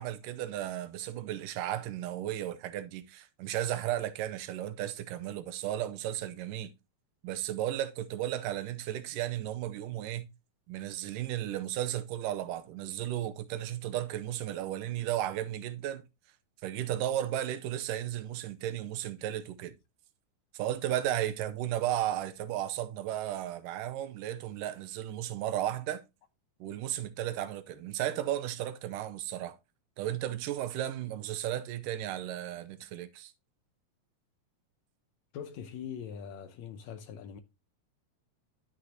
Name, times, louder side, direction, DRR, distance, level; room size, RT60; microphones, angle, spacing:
voice 1, 0.0-6.7 7.2-10.3 10.7-16.0 16.6-19.7 20.5-26.0 26.6-29.6 30.0-33.3, right 12 dB, 90° right, 2.4 m, -34 dB
voice 2, 35.3-37.4, left 8 dB, 75° left, 1.7 m, -42 dB
11.5 x 6.2 x 2.8 m
omnidirectional pair, 3.8 m